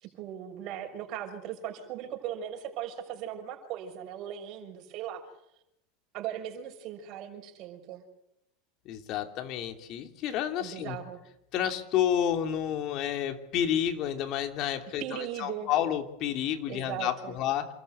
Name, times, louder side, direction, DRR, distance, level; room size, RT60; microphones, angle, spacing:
voice 1, 0.0-5.2 6.1-8.0 10.6-11.2 15.0-15.7 16.7-17.4, right 10 dB, 50° right, 2 dB, 6.2 m, -38 dB
voice 2, 8.8-11.0 11.5-17.7, left 10 dB, 50° left, 7 dB, 3.1 m, -30 dB
27.5 x 14.0 x 8.3 m, 0.82 s
supercardioid pair, 115°, 0 cm